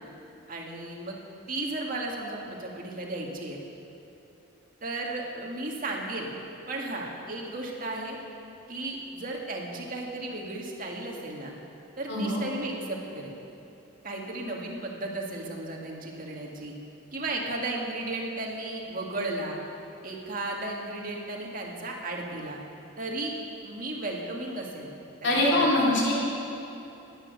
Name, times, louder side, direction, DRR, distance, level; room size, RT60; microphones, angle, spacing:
voice 1, 0.5-1.2 1.5-3.6 4.8-6.3 6.7-8.2 8.7-11.5 12.0-13.4 14.0-16.7 17.1-19.6 20.0-22.6 23.0-23.3 23.6-24.9 25.2-25.6, right 2 dB, 40° right, -1 dB, 2.0 m, -34 dB
voice 2, 12.1-12.4 25.2-26.1, left 1 dB, 55° left, -5 dB, 3.4 m, -23 dB
19.0 x 9.1 x 6.6 m, 3.0 s
head